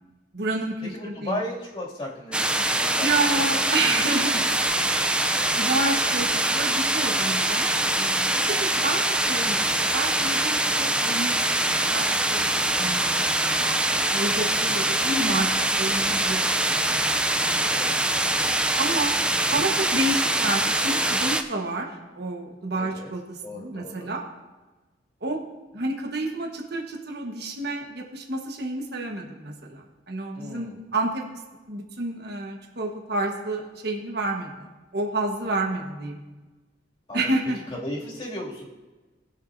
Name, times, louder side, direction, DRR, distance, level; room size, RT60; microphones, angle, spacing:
voice 1, 0.3-1.4 3.0-5.2 5.5-9.0 9.3-11.4 11.9-12.5 12.8-13.7 14.0-16.8 17.4-17.7 18.8-19.1 19.5-24.2 25.2-25.4 25.7-31.2 31.7-34.7 34.9-36.2 37.1-37.6, right 2 dB, 60° right, 1 dB, 1.3 m, -29 dB
voice 2, 0.9-3.4 3.9-4.0 8.5-8.8 10.7-11.0 17.5-17.9 22.7-23.1 23.4-24.1 30.3-30.8 37.1-37.3 37.7-38.7, left 1 dB, 30° left, -5 dB, 2.5 m, -36 dB
sound 1, 2.3-21.4, right 1 dB, 5° right, 0.5 m, -24 dB
20.0 x 6.7 x 2.7 m, 1.2 s
head